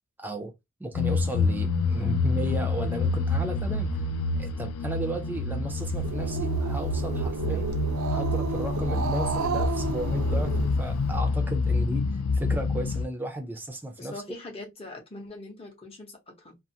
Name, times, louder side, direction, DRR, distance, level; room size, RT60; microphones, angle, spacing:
voice 1, 0.2-0.5 0.8-3.9 4.4-7.7 8.1-12.1 12.3-14.1, right 1 dB, 10° right, 0.5 m, -34 dB
sound 1, 0.9-13.0, left 3 dB, 75° left, 0.3 m, -27 dB
Growling, 5.8-11.2, right 4 dB, 65° right, 0.4 m, -33 dB
voice 2, 14.0-16.6, left 2 dB, 25° left, 0.8 m, -42 dB
2.5 x 2.4 x 2.7 m
head